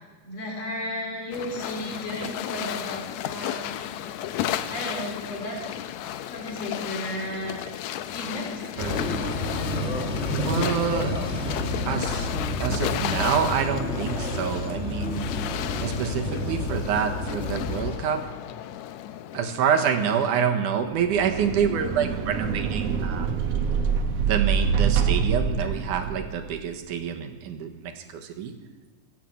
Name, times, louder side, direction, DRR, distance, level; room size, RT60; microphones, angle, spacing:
voice 1, 0.2-3.9 4.7-5.6 6.3-7.6 8.1-8.5, left 1 dB, 55° left, -1 dB, 4.8 m, -33 dB
sound 1, 1.3-20.5, left 11 dB, 80° left, 1.8 m, -34 dB
sound 2, 8.8-18.0, left 2 dB, 25° left, 1.6 m, -29 dB
voice 2, 8.8-9.3 10.3-11.1 11.9-15.3 15.8-18.2 19.3-23.5 24.3-28.5, right 7 dB, 85° right, 4 dB, 2.8 m, -27 dB
sound 3, 20.9-26.5, right 6 dB, 65° right, 1.9 m, -25 dB
17.5 x 9.1 x 7.8 m, 1.4 s
omnidirectional pair, 3.5 m